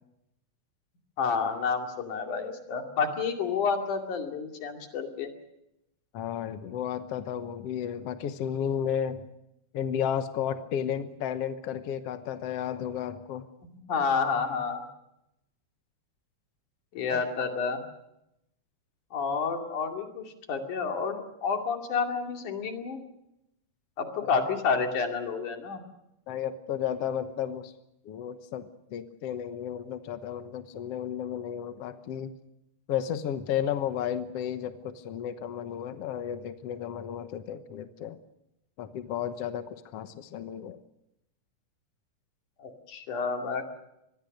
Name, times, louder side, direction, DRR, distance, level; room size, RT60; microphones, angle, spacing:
voice 1, 1.2-5.3 13.9-14.8 16.9-17.8 19.1-23.0 24.0-25.8 42.6-43.6, left 5 dB, 80° left, 4 dB, 4.0 m, -29 dB
voice 2, 6.1-9.3 9.7-13.5 17.1-17.2 24.2-24.3 26.3-27.7 28.1-32.3 32.9-38.2 38.8-40.8, left 9 dB, 60° left, 9 dB, 1.9 m, -33 dB
25.5 x 21.0 x 6.6 m, 0.84 s
omnidirectional pair, 3.5 m